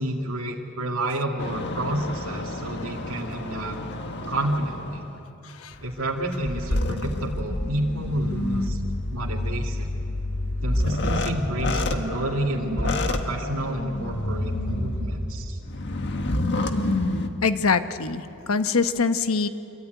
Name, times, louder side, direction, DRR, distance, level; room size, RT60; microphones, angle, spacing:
voice 1, 0.0-3.8 4.3-5.1 5.8-8.8 9.1-9.9 10.6-15.6, right 1 dB, 75° right, -1 dB, 2.4 m, -29 dB
sound 1, 1.4-5.1 5.7-17.3, left 1 dB, 55° left, 1.7 m, -28 dB
voice 2, 5.4-5.8 17.4-19.5, left 4 dB, 75° left, 9 dB, 1.1 m, -24 dB
26.5 x 23.5 x 9.3 m, 2.8 s
head